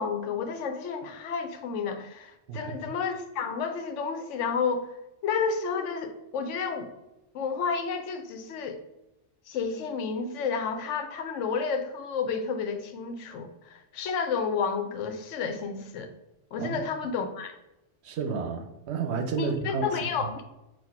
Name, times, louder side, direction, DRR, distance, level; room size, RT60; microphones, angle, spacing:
voice 1, 0.0-4.9 5.2-6.9 7.3-8.8 9.5-16.1 16.5-17.6 19.4-20.5, left 5 dB, 80° left, 8 dB, 0.9 m, -31 dB
voice 2, 2.5-2.9 16.6-16.8 18.0-19.9 20.2-20.3, right 5 dB, 70° right, 5 dB, 0.8 m, -31 dB
4.1 x 2.3 x 4.3 m, 0.92 s
omnidirectional pair, 1.2 m